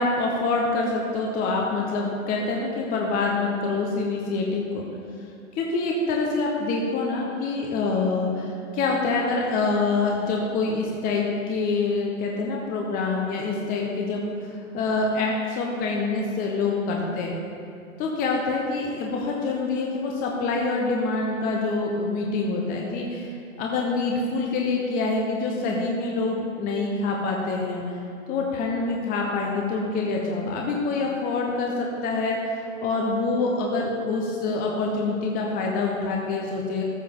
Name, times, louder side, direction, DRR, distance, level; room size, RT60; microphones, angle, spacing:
voice 1, 0.0-4.8 5.6-17.4 18.0-27.8 28.3-36.8, left 3 dB, 20° left, -1 dB, 0.9 m, -26 dB
14.0 x 6.6 x 3.8 m, 2.6 s
hypercardioid pair, 120°, 41 cm